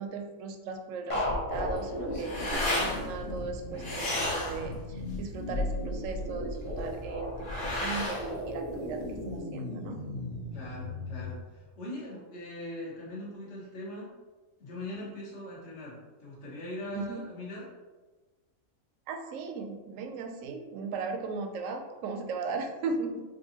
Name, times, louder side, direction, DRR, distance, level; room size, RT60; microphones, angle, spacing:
voice 1, 0.0-10.0 16.9-17.2 19.1-23.2, right 4 dB, 70° right, 5 dB, 0.9 m, -37 dB
sound 1, 1.1-11.3, left 1 dB, 25° left, 0.9 m, -36 dB
sound 2, 1.5-9.4, left 1 dB, 85° left, 1.9 m, -34 dB
voice 2, 10.5-14.1 14.6-17.7, left 1 dB, 55° left, -7 dB, 1.4 m, -41 dB
5.2 x 2.6 x 2.8 m, 1.3 s
omnidirectional pair, 1.5 m